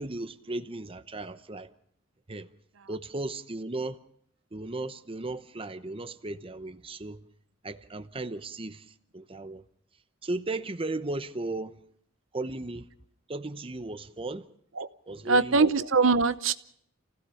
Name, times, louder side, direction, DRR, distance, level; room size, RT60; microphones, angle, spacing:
voice 1, 0.0-1.7 2.3-2.5 2.9-4.0 4.5-7.2 7.6-8.9 9.1-9.6 10.2-11.8 12.3-12.9 13.3-14.5 15.1-15.6, right 2 dB, 30° right, 0.9 m, -35 dB
voice 2, 15.2-16.5, right 4 dB, 80° right, 0.8 m, -22 dB
28.5 x 16.5 x 5.7 m
head